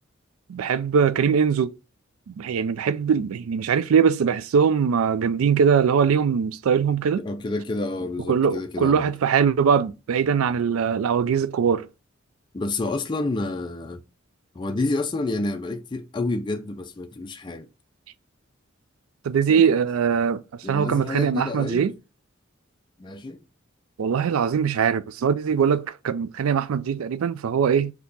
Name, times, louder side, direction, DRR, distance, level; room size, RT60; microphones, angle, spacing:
voice 1, 0.5-1.7 2.3-7.2 8.3-11.9 19.2-20.4 20.7-21.9 24.0-27.9, right 7 dB, 85° right, 0.4 m, -21 dB
voice 2, 7.2-9.1 12.5-14.0 14.5-17.7 19.5-19.7 20.6-21.9 23.0-23.4, left 2 dB, 20° left, 0.4 m, -29 dB
4.3 x 2.8 x 4.0 m
head